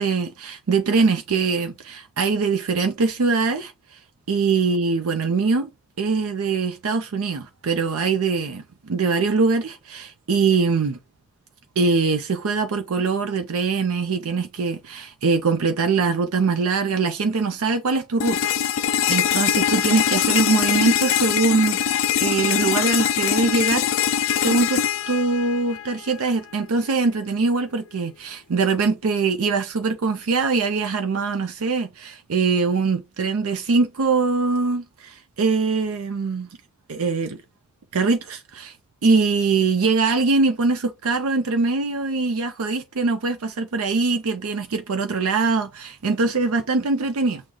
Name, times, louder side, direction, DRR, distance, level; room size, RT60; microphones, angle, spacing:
voice 1, 0.0-4.0 4.3-5.7 6.0-11.0 11.8-18.5 19.1-23.9 24.3-36.5 36.9-37.4 37.9-38.8 39.0-47.4, right 4 dB, 85° right, 0.5 m, -22 dB
sound 1, 18.2-26.2, left 9 dB, 70° left, 0.4 m, -22 dB
6.3 x 2.2 x 3.6 m
head